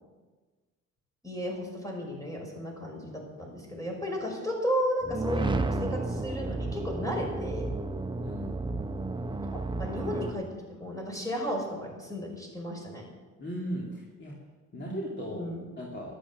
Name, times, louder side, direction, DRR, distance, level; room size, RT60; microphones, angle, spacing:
voice 1, 1.2-7.7 9.4-13.0 15.3-15.6, equal, 10° left, 0 dB, 5.5 m, -34 dB
sound 1, 5.0-10.3, right 2 dB, 15° right, 0.9 m, -32 dB
voice 2, 8.2-8.6 13.4-14.3 14.7-15.5 15.8-16.1, equal, 40° left, -3 dB, 2.9 m, -37 dB
12.5 x 12.0 x 7.4 m, 1.3 s
cardioid pair, 90°, 30 cm